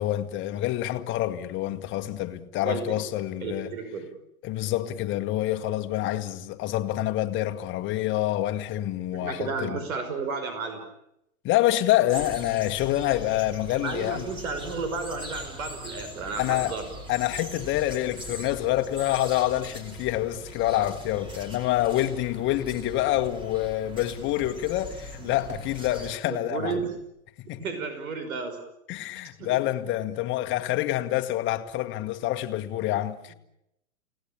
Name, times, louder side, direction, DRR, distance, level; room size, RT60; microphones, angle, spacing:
voice 1, 0.0-3.7 4.4-9.8 11.4-14.3 16.4-16.8 17.1-26.8 27.5-27.6 28.9-33.3, left 14 dB, 30° left, 1.6 m, -27 dB
voice 2, 2.6-3.0 3.4-4.1 9.1-10.8 13.7-16.9 26.3-26.9 27.6-28.6 29.4-29.6, right 4 dB, 75° right, 5.6 m, -32 dB
sound 1, 12.1-26.2, equal, 10° right, 2.7 m, -41 dB
sound 2, 23.1-23.5 24.4-24.9 25.5-26.0 26.7-27.1, right 4 dB, 35° right, 3.5 m, -46 dB
29.0 x 18.5 x 8.7 m
hypercardioid pair, 145°, 42 cm